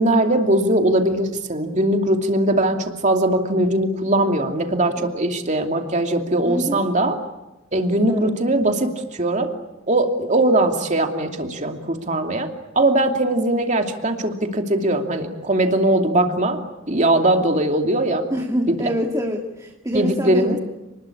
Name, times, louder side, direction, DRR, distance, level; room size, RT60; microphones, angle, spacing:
voice 1, 0.0-7.2 7.7-9.5 9.9-12.5 12.8-18.3 18.7-18.9 19.9-20.6, right 1 dB, 35° right, 4 dB, 2.7 m, -20 dB
voice 2, 6.4-6.8 8.1-8.3 18.3-20.6, equal, 15° right, 2 dB, 2.1 m, -25 dB
30.0 x 20.5 x 8.6 m, 1.0 s
head